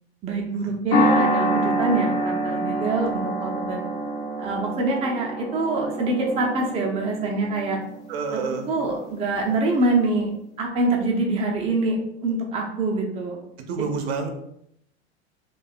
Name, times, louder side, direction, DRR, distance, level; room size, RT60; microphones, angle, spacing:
voice 1, 0.2-3.8 4.4-7.8 8.3-8.4 8.7-10.3 10.6-13.4, right 2 dB, 20° right, 0 dB, 0.4 m, -25 dB
sound 1, 0.9-9.4, right 1 dB, 30° left, 0.5 m, -27 dB
voice 2, 8.1-8.7 13.6-14.3, right 5 dB, 65° right, 4 dB, 0.5 m, -28 dB
2.6 x 2.2 x 2.3 m, 0.75 s
hypercardioid pair, 90°, 35 cm